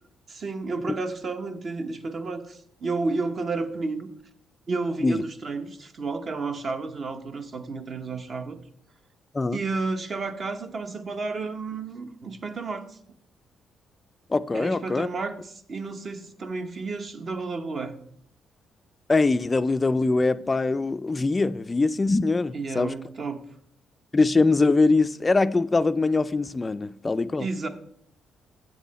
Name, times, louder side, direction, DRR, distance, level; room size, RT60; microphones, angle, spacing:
voice 1, 0.3-4.1 4.7-8.6 9.5-13.0 14.5-18.0 22.5-23.4 27.4-27.7, right 3 dB, 45° right, 0.9 m, -31 dB
voice 2, 14.3-15.1 19.1-22.9 24.1-27.5, left 3 dB, 25° left, 0.3 m, -22 dB
7.6 x 7.3 x 4.1 m
cardioid pair, 90°, 0 cm